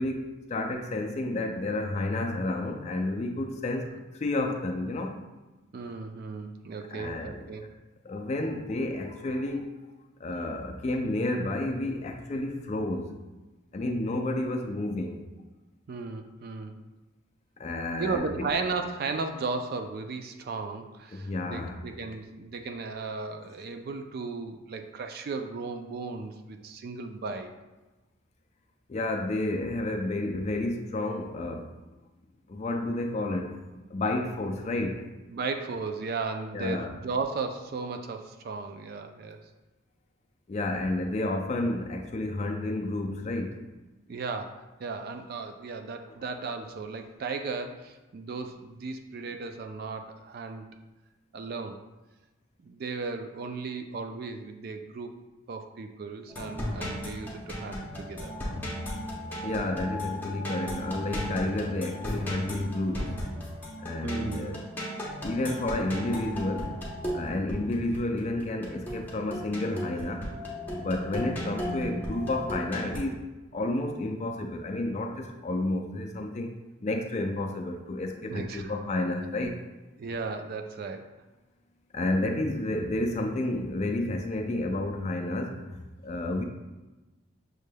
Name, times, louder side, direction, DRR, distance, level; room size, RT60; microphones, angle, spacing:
voice 1, 0.0-5.2 6.9-7.5 8.0-9.8 10.2-13.2 13.7-15.2 17.6-18.5 21.1-21.8 28.9-31.7 32.5-33.6 33.9-35.1 36.5-36.9 40.5-43.6 59.4-63.2 63.8-64.6 65.2-66.8 67.1-70.3 70.7-73.3 73.5-76.5 76.8-79.6 81.9-86.4, left 2 dB, 30° left, 4 dB, 0.3 m, -31 dB
voice 2, 5.7-7.7 15.9-16.8 18.0-27.5 35.3-39.4 44.1-50.7 51.3-51.8 52.6-55.1 55.5-58.3 64.0-64.6 78.3-78.7 80.0-81.1, right 4 dB, 45° right, 6 dB, 0.3 m, -35 dB
sound 1, 56.3-73.0, equal, 10° left, 0.8 m, -36 dB
6.2 x 3.3 x 2.2 m, 1.1 s
head